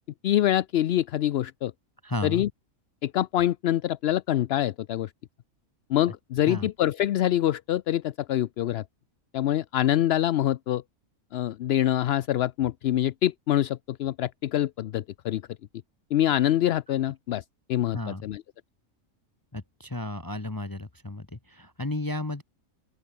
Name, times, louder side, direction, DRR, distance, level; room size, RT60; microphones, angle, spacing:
voice 1, 0.2-1.7 2.2-2.5 3.0-5.1 5.9-8.8 9.3-10.8 11.3-15.4 16.1-17.4 17.7-18.4, left 12 dB, 65° left, 0.7 m, -25 dB
voice 2, 2.0-2.4 6.5-6.7 17.9-18.3 19.5-22.4, left 2 dB, 15° left, 0.9 m, -33 dB
open air
omnidirectional pair, 1.4 m